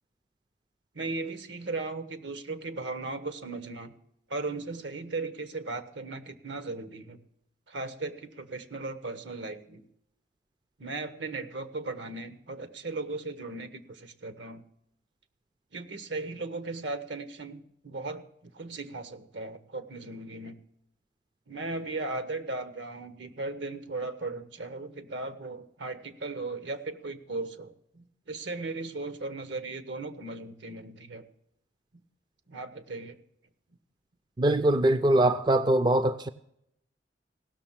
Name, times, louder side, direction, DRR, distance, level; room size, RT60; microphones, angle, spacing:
voice 1, 0.9-3.9 4.3-7.2 7.7-9.8 10.8-14.6 15.7-18.2 18.5-20.6 21.5-31.2 32.5-33.2, right 3 dB, 75° right, 1.1 m, -37 dB
voice 2, 34.4-36.3, right 1 dB, 25° right, 0.4 m, -22 dB
17.0 x 6.5 x 7.3 m
head